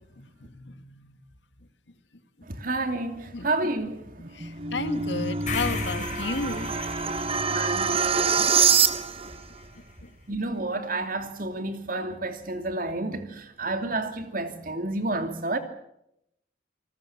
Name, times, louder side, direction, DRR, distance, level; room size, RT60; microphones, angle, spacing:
voice 1, 0.5-1.0 3.3-3.5 4.3-6.7, left 3 dB, 80° left, 2.2 m, -32 dB
voice 2, 2.5-4.1 4.4-4.5 5.1-5.2 7.5-8.5 10.3-15.6, right 2 dB, 50° right, 2.8 m, -30 dB
sound 1, 4.2-9.4, right 6 dB, 35° right, 1.3 m, -25 dB
sound 2, 5.5-9.6, left 4 dB, 45° left, 6.3 m, -37 dB
29.0 x 20.0 x 7.4 m
head